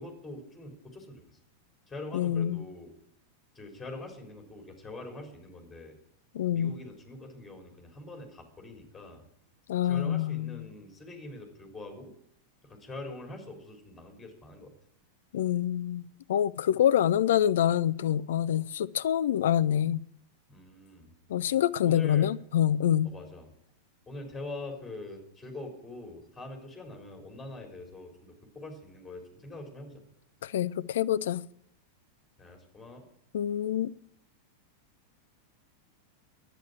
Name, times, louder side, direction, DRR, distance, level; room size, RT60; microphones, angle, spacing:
voice 1, 0.0-1.4 1.9-2.9 3.5-6.0 6.5-9.2 9.8-12.1 12.6-14.7 20.5-21.1 21.8-22.3 23.0-23.5 24.1-30.0 32.4-33.0, left 2 dB, 10° left, 3.9 m, -44 dB
voice 2, 2.1-2.6 6.3-6.8 9.7-10.7 15.3-16.0 16.3-20.0 21.3-23.1 30.4-31.4 33.3-33.9, left 10 dB, 60° left, 0.4 m, -26 dB
10.5 x 9.1 x 8.2 m
figure-of-eight pair, 90°, 0 cm